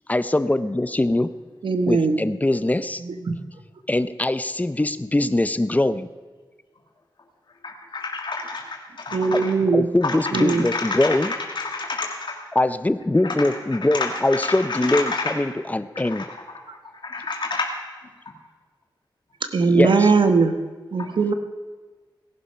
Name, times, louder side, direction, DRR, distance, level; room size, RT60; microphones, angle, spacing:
voice 1, 0.1-1.3 1.9-3.0 3.9-6.1 9.3-9.4 9.7-11.3 12.5-16.3 19.7-20.1, left 2 dB, 20° left, 13 dB, 0.7 m, -22 dB
voice 2, 1.6-2.2 3.0-3.4 9.1-9.9 10.3-10.7 19.5-20.5 20.9-21.3, right 4 dB, 85° right, 7 dB, 1.2 m, -19 dB
voice 3, 7.6-9.5 10.0-12.4 13.2-13.3 13.9-15.3 15.9-16.3 17.0-17.7 21.0-21.1, left 3 dB, 70° left, 1 dB, 1.9 m, -29 dB
18.0 x 11.5 x 5.7 m, 1.4 s
wide cardioid pair, 90°, 8 cm